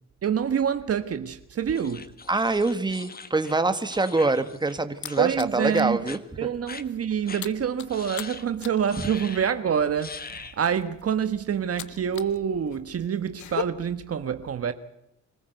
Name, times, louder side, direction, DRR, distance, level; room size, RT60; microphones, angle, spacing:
voice 1, 0.2-2.1 5.2-6.0 6.4-14.7, right 8 dB, 50° right, 1.4 m, -26 dB
sound 1, 1.7-4.8 5.0-5.4 5.6-6.2 6.7-6.8 7.3-7.4 7.9-8.5 8.9-9.6 10.0-10.6, left 5 dB, 30° left, 1.6 m, -41 dB
voice 2, 2.3-6.2, right 3 dB, 15° right, 1.8 m, -25 dB
sound 2, 4.2-6.0 6.3-6.6 6.8-12.4 12.7-13.6, left 12 dB, 70° left, 1.0 m, -39 dB
25.5 x 14.5 x 8.1 m
cardioid pair, 90°, 30 cm